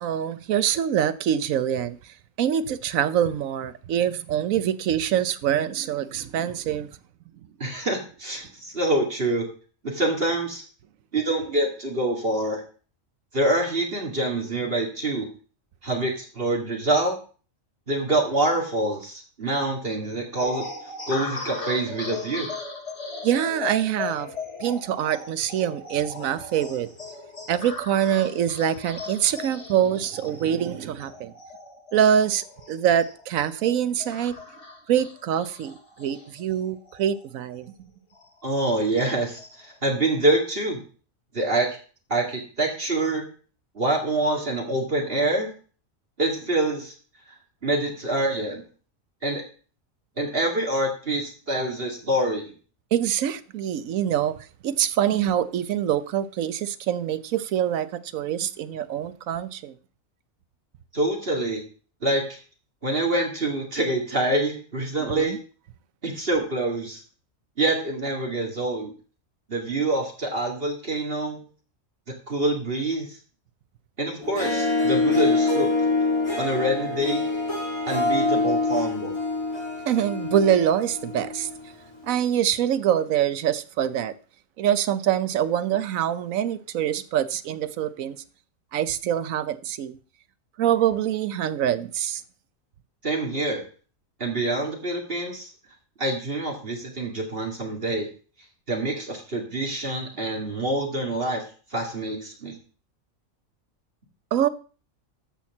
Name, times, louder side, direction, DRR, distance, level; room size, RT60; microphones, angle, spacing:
voice 1, 0.0-2.0 2.4-6.9 23.2-24.3 24.6-26.9 27.5-31.3 31.9-34.4 34.9-37.7 52.9-54.3 54.6-59.7 65.0-65.4 79.8-81.5 82.0-84.1 84.6-88.2 88.7-90.0 90.6-92.2 104.3-104.5, right 10 dB, 80° right, 1.1 m, -24 dB
voice 2, 7.6-9.5 9.8-10.6 11.1-12.6 13.3-15.3 15.8-17.2 17.9-20.7 21.1-22.5 38.4-40.8 41.3-41.7 42.1-43.2 43.8-45.5 46.2-46.9 47.6-48.6 49.2-49.4 50.2-52.5 60.9-61.6 62.0-62.4 62.8-65.4 66.0-67.0 67.6-68.9 69.5-71.4 72.3-73.1 74.0-75.7 76.4-77.2 77.9-79.1 93.0-93.6 94.2-95.5 96.0-98.1 98.7-101.4 101.7-102.6, right 2 dB, 45° right, 2.3 m, -26 dB
sound 1, 20.4-37.3 37.6-37.7 38.1-39.7, left 3 dB, 55° left, 2.9 m, -38 dB
Harp, 74.2-81.7, left 3 dB, 25° left, 2.4 m, -25 dB
13.0 x 4.4 x 7.1 m
omnidirectional pair, 1.4 m